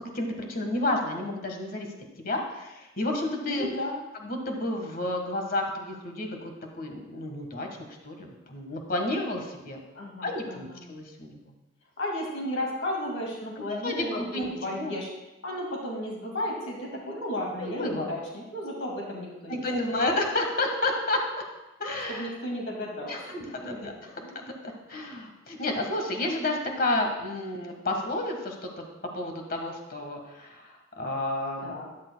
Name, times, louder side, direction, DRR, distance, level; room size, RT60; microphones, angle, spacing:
voice 1, 0.1-1.9 2.2-3.7 4.2-7.7 8.0-9.8 10.2-11.4 13.8-14.9 17.6-18.1 19.5-21.2 21.8-22.3 23.1-28.9 29.1-31.7, left 2 dB, 50° left, 3 dB, 1.5 m, -31 dB
voice 2, 3.5-4.0 9.9-10.9 12.0-15.1 15.4-19.8 22.1-23.2 23.5-24.4 31.6-31.9, left 1 dB, 85° left, -1 dB, 2.1 m, -34 dB
13.0 x 10.5 x 2.2 m, 0.99 s
head